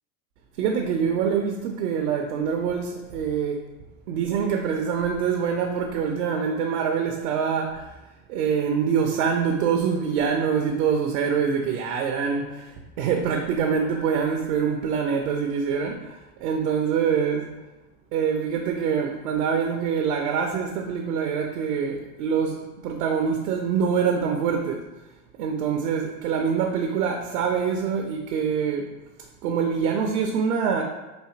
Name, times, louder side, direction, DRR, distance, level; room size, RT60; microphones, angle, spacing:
voice 1, 0.6-3.6 4.1-7.9 8.3-17.5 18.1-24.8 25.4-28.9 29.4-30.8, right 6 dB, 70° right, 3 dB, 0.5 m, -25 dB
4.1 x 2.5 x 2.4 m, 1.1 s
hypercardioid pair, 80°, 46 cm